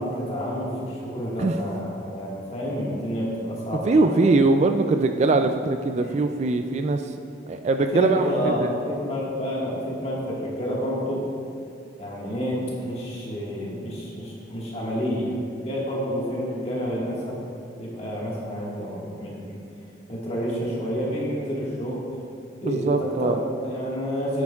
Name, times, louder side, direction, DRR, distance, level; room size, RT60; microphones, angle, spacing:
voice 1, 0.0-4.2 5.9-6.1 7.9-11.2 12.0-17.4 17.8-19.6 20.1-22.0 22.6-24.4, equal, 35° left, -5 dB, 1.7 m, -29 dB
voice 2, 3.8-7.1 7.5-8.7 22.6-23.4, right 3 dB, 40° right, 7 dB, 0.3 m, -22 dB
9.5 x 8.6 x 2.4 m, 2.5 s
head